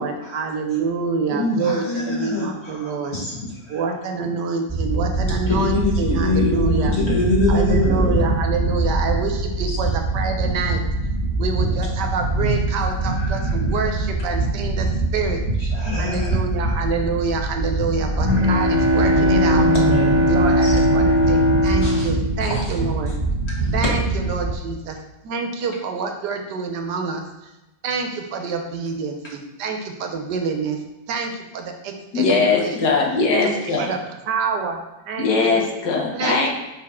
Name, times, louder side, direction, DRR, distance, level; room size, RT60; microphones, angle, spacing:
voice 1, 0.0-3.2 3.7-7.0 7.5-10.8 11.4-14.9 15.1-15.4 15.9-19.7 20.3-23.1 23.7-25.0 25.2-27.3 27.8-30.8 31.1-32.8 33.4-34.0 34.2-34.8 35.1-35.6 36.1-36.5, right 5 dB, 75° right, 4 dB, 1.3 m, -27 dB
voice 2, 1.3-3.8 5.5-8.2 9.7-9.8 12.8-13.8 15.6-16.4 19.1-20.7 21.8-22.1 22.4-22.7 23.1-23.2, left 2 dB, 40° left, -4 dB, 1.8 m, -25 dB
sound 1, 4.7-24.5, right 2 dB, 15° left, 1.7 m, -24 dB
Bowed string instrument, 17.9-23.3, equal, 15° right, 2.1 m, -19 dB
voice 3, 32.1-33.9 35.2-36.5, left 4 dB, 65° left, 0 dB, 1.6 m, -20 dB
5.9 x 4.8 x 3.6 m, 1.0 s
omnidirectional pair, 1.9 m